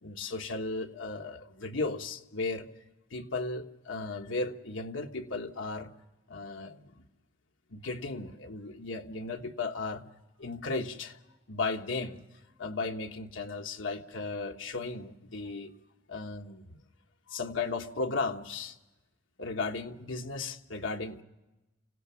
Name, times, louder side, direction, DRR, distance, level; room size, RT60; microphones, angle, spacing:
voice 1, 0.0-2.7 3.1-5.9 6.3-7.0 7.7-10.0 10.4-11.2 11.5-12.2 12.6-15.7 16.1-16.6 17.3-18.8 19.4-21.2, left 3 dB, 75° left, 4 dB, 1.4 m, -35 dB
25.5 x 17.0 x 7.0 m, 1.0 s
head